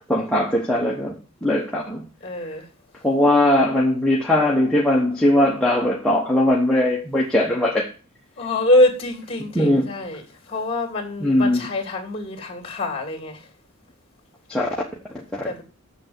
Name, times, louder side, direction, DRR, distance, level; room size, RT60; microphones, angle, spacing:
voice 1, 0.1-2.0 2.4-2.5 3.0-7.9 9.5-9.9 11.2-11.6 14.5-14.7 15.1-15.5, left 1 dB, 5° left, 1.0 m, -20 dB
voice 2, 2.2-2.7 8.4-10.2 10.5-13.4 15.4-15.6, left 1 dB, 25° left, 2.6 m, -24 dB
7.0 x 6.8 x 7.9 m
head